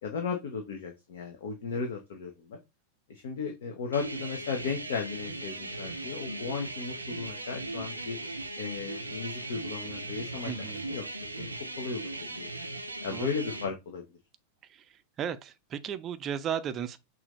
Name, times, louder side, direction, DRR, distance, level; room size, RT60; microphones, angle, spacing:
voice 1, 0.0-2.6 3.1-8.2 8.6-11.5 11.8-12.6 13.0-14.0, left 5 dB, 55° left, 0.9 m, -36 dB
sound 1, 3.9-13.7, right 2 dB, 85° right, 0.6 m, -38 dB
voice 2, 10.4-10.9 13.1-13.3 14.7-14.8 15.2-17.0, right 9 dB, 30° right, 0.5 m, -35 dB
6.1 x 2.6 x 3.1 m
figure-of-eight pair, 90°, 0 cm